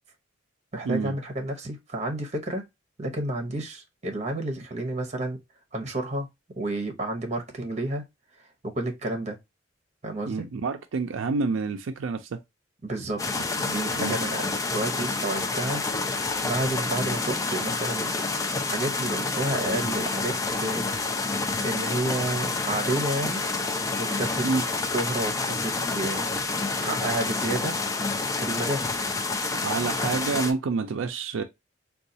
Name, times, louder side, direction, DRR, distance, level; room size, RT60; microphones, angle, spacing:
voice 1, 0.7-2.6 3.0-5.4 5.7-6.3 6.6-8.0 8.6-9.4 10.0-10.5 12.8-15.8 16.4-18.2 18.7-20.9 21.6-23.4 24.0-24.5 24.9-26.3 26.8-27.8 28.4-28.9, right 1 dB, 35° right, 0.8 m, -30 dB
voice 2, 10.3-12.4 14.0-14.2 24.4-24.6 29.5-31.4, right 4 dB, 80° right, 0.4 m, -28 dB
sound 1, 13.2-30.5, left 3 dB, 15° left, 0.3 m, -28 dB
3.8 x 2.3 x 2.6 m
head